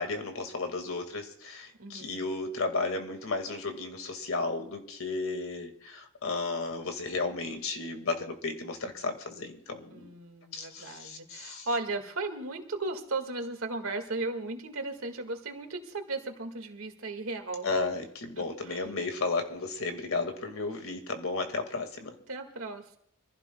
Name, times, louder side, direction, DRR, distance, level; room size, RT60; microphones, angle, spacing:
voice 1, 0.0-10.1 10.5-11.7 17.6-22.1, left 3 dB, 85° left, 6 dB, 2.0 m, -33 dB
voice 2, 1.8-2.2 9.9-17.7 18.4-18.9 22.3-23.0, right 2 dB, 85° right, 5 dB, 1.9 m, -36 dB
25.5 x 15.5 x 2.3 m, 0.69 s
head